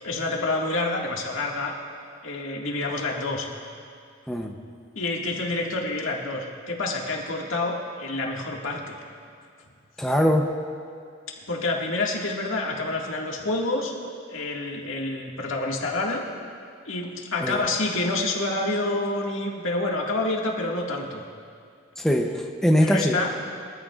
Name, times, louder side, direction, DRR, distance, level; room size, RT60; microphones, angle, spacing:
voice 1, 0.0-1.7 2.2-3.5 5.0-9.0 11.5-14.0 14.3-16.2 16.9-21.2 22.8-23.3, left 2 dB, 85° left, -1 dB, 1.9 m, -28 dB
voice 2, 10.0-10.5 17.4-17.6 22.0-23.2, equal, 5° left, 1 dB, 0.6 m, -22 dB
23.0 x 14.0 x 2.4 m, 2.3 s
head